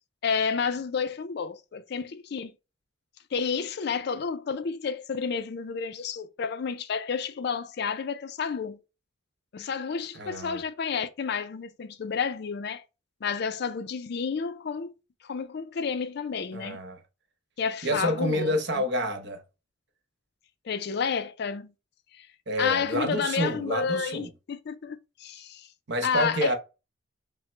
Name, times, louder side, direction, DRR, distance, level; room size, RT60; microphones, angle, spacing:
voice 1, 0.2-2.5 3.3-8.8 9.5-12.8 13.2-14.9 15.2-16.8 17.6-18.5 20.6-21.7 22.1-22.3 22.6-25.7 26.0-26.5, left 6 dB, 55° left, 0.4 m, -30 dB
voice 2, 10.1-10.6 16.5-17.0 17.8-19.4 22.5-24.3 25.9-26.5, equal, 60° right, 0.8 m, -28 dB
5.6 x 2.1 x 3.2 m
head